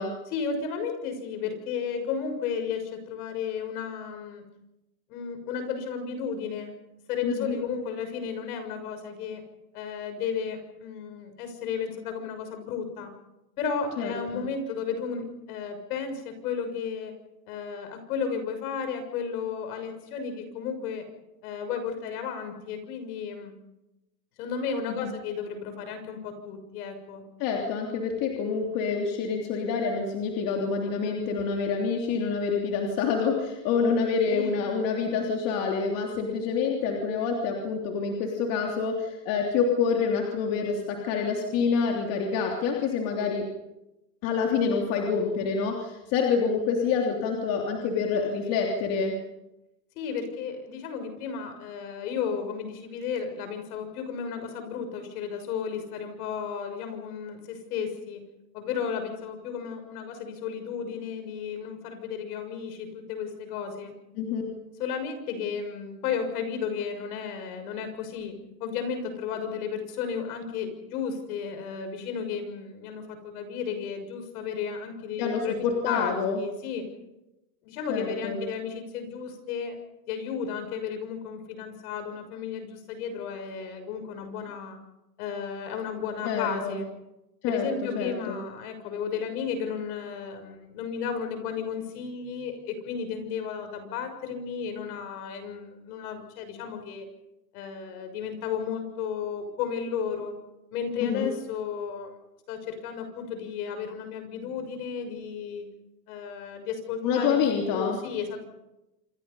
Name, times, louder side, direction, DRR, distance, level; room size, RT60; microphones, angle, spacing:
voice 1, 0.3-4.4 5.1-6.7 7.1-9.4 9.7-13.1 13.6-17.1 17.5-21.0 21.4-23.6 24.4-27.2 34.2-34.5 49.9-58.2 58.5-63.9 64.8-76.9 77.6-79.8 80.1-84.8 85.2-86.9 87.5-97.1 97.5-100.4 100.7-102.1 102.5-105.7 106.1-108.5, left 6 dB, 65° left, 7 dB, 6.6 m, -33 dB
voice 2, 7.2-7.6 14.0-14.4 25.0-25.1 27.4-43.5 44.2-49.1 64.1-64.4 75.2-76.4 77.9-78.4 86.2-86.8 87.4-87.6 87.9-88.4 101.0-101.3 107.0-108.0, left 5 dB, 45° left, 1 dB, 3.2 m, -27 dB
27.5 x 24.5 x 5.6 m, 0.95 s
supercardioid pair, 145°, 49 cm